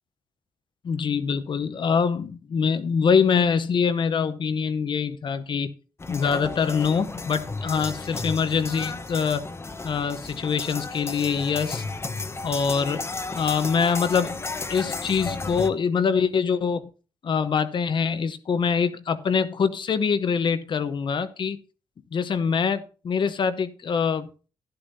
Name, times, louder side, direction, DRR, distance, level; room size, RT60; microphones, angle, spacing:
voice 1, 0.8-5.7 6.1-9.4 9.8-11.8 12.4-13.0 13.3-14.4 14.7-16.9 17.2-21.6 22.1-24.3, left 6 dB, 55° left, 0.9 m, -24 dB
sound 1, 6.0-15.7, left 3 dB, 25° left, 0.9 m, -33 dB
11.5 x 11.0 x 2.7 m
cardioid pair, 80°, 10 cm